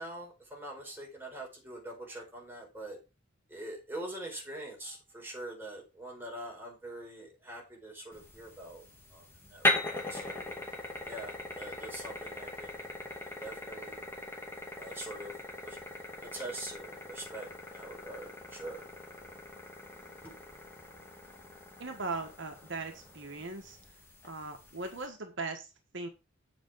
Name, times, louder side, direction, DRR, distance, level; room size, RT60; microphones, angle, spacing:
voice 1, 0.0-3.0 3.5-8.9 9.1-10.4 11.1-12.8 13.2-14.0 14.8-15.4 15.6-15.8 16.2-18.9 20.2-20.3, right 1 dB, 10° right, -1 dB, 4.2 m, -44 dB
sound 1, 8.1-25.0, left 1 dB, 10° left, 2.4 m, -39 dB
voice 2, 21.8-23.8 24.2-26.1, right 3 dB, 65° right, 4 dB, 1.4 m, -39 dB
8.1 x 7.4 x 4.7 m, 0.29 s
head